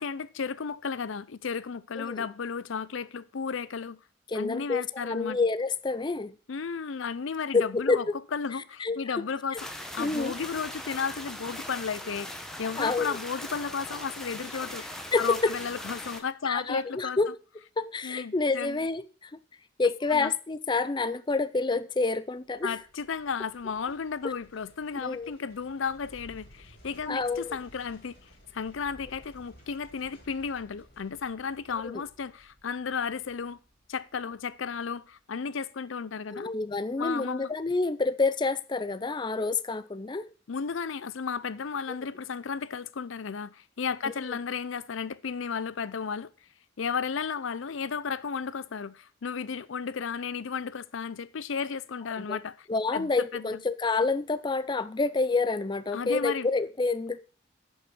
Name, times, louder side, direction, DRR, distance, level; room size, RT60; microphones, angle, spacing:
voice 1, 0.0-4.0 4.3-5.4 6.5-8.1 8.3-17.2 18.0-18.8 20.1-20.3 22.6-28.2 28.5-33.6 33.9-36.5 37.0-37.5 40.5-46.3 46.8-52.7 52.9-53.6 55.9-56.5, left 6 dB, 75° left, 0.5 m, -34 dB
voice 2, 2.0-2.3 4.3-6.3 7.5-8.0 8.8-9.3 9.5-9.6 10.0-10.3 12.8-13.2 15.1-15.5 16.5-17.3 17.8-19.4 19.8-22.8 24.2-24.3 25.0-25.3 27.1-27.6 31.9-32.0 36.3-40.3 44.2-44.4 52.2-52.4 52.7-57.2, left 3 dB, 25° left, 0.4 m, -28 dB
sound 1, 9.6-16.2, left 1 dB, ahead, 1.1 m, -40 dB
sound 2, 22.5-35.6 35.9-36.0, equal, 50° left, 3.5 m, -56 dB
10.5 x 5.5 x 6.1 m
head